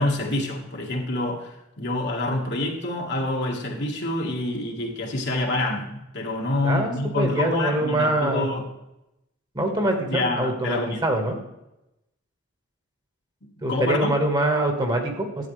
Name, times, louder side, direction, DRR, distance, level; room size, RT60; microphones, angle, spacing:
voice 1, 0.0-8.6 10.1-11.0 13.4-14.2, left 2 dB, 55° left, 0 dB, 1.8 m, -27 dB
voice 2, 6.6-8.5 9.5-11.4 13.6-15.5, right 1 dB, 20° right, 3 dB, 1.7 m, -24 dB
12.0 x 8.5 x 3.3 m, 0.89 s
head